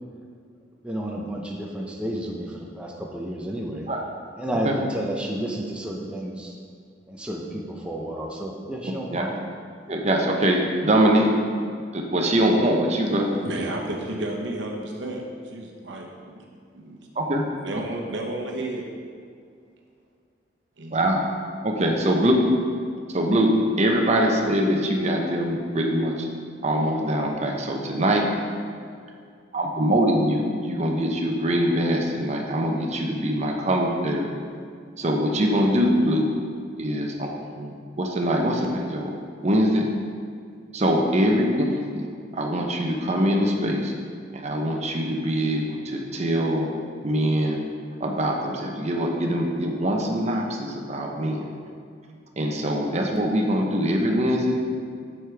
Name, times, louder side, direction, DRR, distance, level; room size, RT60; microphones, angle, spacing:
voice 1, 0.8-3.9 4.4-6.5 7.1-9.4, right 1 dB, 5° right, 0.6 m, -31 dB
voice 2, 9.9-11.3 11.9-13.3 17.2-17.4 20.9-21.2 21.6-22.4 23.1-26.3 26.6-28.3 29.5-34.3 35.0-36.3 36.8-39.2 39.4-39.9 40.7-43.9 44.3-46.7 47.0-47.6 48.0-51.4 52.4-54.6, equal, 35° right, 0.8 m, -23 dB
voice 3, 13.2-16.1 16.3-16.4 16.7-17.0 17.4-18.8 20.8-21.0, right 1 dB, 70° right, 1.0 m, -32 dB
8.0 x 6.5 x 3.4 m
head